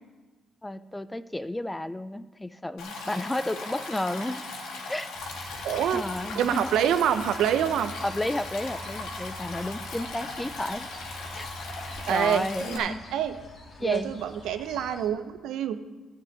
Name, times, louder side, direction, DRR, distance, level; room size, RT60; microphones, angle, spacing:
voice 1, 0.6-4.4 4.9-5.1 5.9-6.7 8.0-10.9 11.3-13.0 13.8-14.1, left 1 dB, 10° left, 14 dB, 0.4 m, -32 dB
Stream, 2.8-12.8, left 3 dB, 85° left, 1.9 m, -38 dB
sound 1, 5.1-15.1, equal, 50° left, 1.9 m, -45 dB
voice 2, 5.6-6.0 6.4-7.9 12.1-13.4 13.8-15.8, right 9 dB, 80° right, 10 dB, 0.7 m, -26 dB
11.5 x 5.5 x 8.0 m, 1.3 s
cardioid pair, 90°, 0 cm